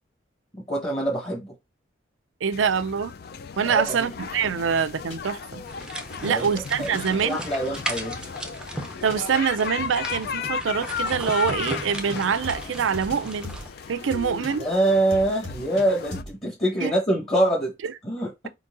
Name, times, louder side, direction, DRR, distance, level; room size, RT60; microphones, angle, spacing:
voice 1, 0.6-1.5 3.6-4.1 6.2-6.5 6.8-8.2 14.6-17.7 18.0-18.3, right 1 dB, 30° left, 1.2 m, -25 dB
voice 2, 2.4-3.1 3.6-5.6 6.2-7.4 9.0-13.5 13.9-14.7 16.8-16.9 17.8-17.9, right 6 dB, 80° right, 0.4 m, -25 dB
sound 1, 2.5-16.2, left 7 dB, 50° left, 0.3 m, -36 dB
sound 2, 4.4-4.6 5.1-5.2 5.8-6.5 6.9-7.2 7.6-7.8 8.1-8.2 8.8-9.1 9.8-10.5 11.1-12.1 12.4-14.6 15.1-15.8 16.1-16.3, left 2 dB, 80° left, 2.3 m, -39 dB
sound 3, 5.6-13.7, right 1 dB, 5° right, 0.5 m, -37 dB
4.5 x 3.9 x 2.5 m
head